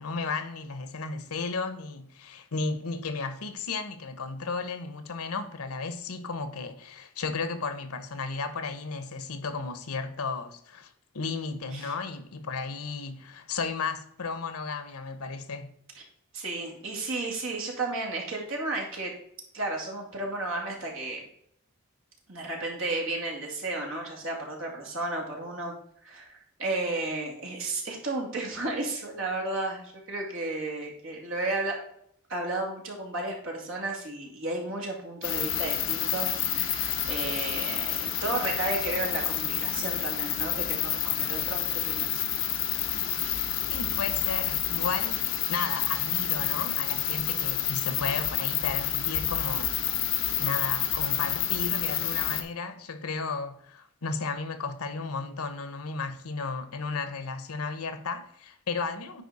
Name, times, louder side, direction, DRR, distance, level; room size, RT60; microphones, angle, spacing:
voice 1, 0.0-15.7 43.7-49.7 50.4-59.2, left 4 dB, 90° left, 0.9 m, -34 dB
voice 2, 16.3-19.1 19.5-21.2 22.3-25.7 26.0-31.7 32.3-42.2, right 2 dB, 65° right, 2.4 m, -33 dB
sound 1, 35.2-52.4, left 11 dB, 55° left, 1.0 m, -29 dB
10.0 x 4.4 x 4.1 m
head